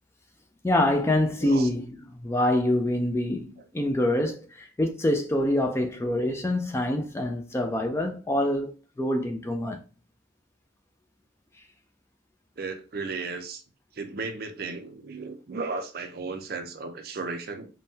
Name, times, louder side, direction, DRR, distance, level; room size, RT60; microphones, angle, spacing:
voice 1, 0.6-9.8, left 1 dB, 15° left, 0.3 m, -26 dB
voice 2, 12.6-13.6 13.9-17.7, right 4 dB, 50° right, 0.5 m, -35 dB
3.5 x 2.2 x 2.7 m
head